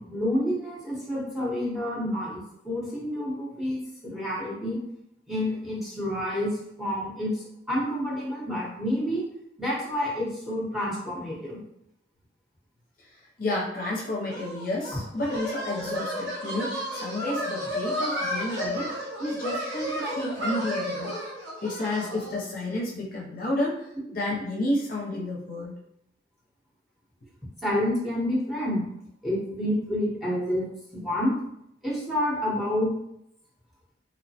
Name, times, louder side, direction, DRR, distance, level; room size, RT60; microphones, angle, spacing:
voice 1, 0.0-4.8 5.3-9.2 9.6-11.6 14.9-15.0 27.6-28.8 29.2-31.3 31.8-32.9, left 1 dB, ahead, -6 dB, 0.7 m, -29 dB
voice 2, 13.4-21.1 21.6-23.9 24.1-25.8, left 1 dB, 50° left, -3 dB, 0.5 m, -31 dB
sound 1, 14.3-22.4, equal, 65° right, 0.8 m, -32 dB
2.9 x 2.1 x 2.7 m, 0.77 s
head